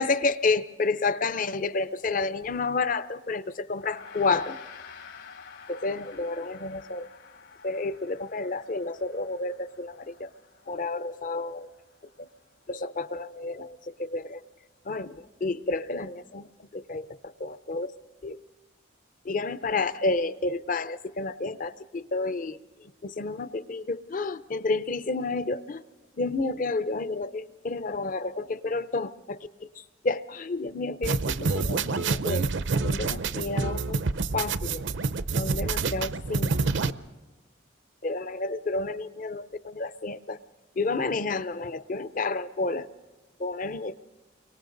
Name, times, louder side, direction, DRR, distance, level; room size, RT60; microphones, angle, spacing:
voice 1, 0.0-4.6 5.7-7.1 7.6-10.3 10.7-11.7 12.2-12.3 12.7-14.4 14.9-17.9 18.2-18.4 19.2-22.6 23.0-25.8 26.2-32.5 32.8-34.0 34.3-34.8 35.3-36.7 38.0-40.4 40.8-42.9 43.4-43.9, left 3 dB, 40° left, 14 dB, 0.6 m, -30 dB
Gong, 3.8-13.3, left 6 dB, 85° left, 4.9 m, -49 dB
sound 1, 31.0-36.9, right 4 dB, 70° right, 0.6 m, -27 dB
30.0 x 23.5 x 3.9 m, 1.2 s
head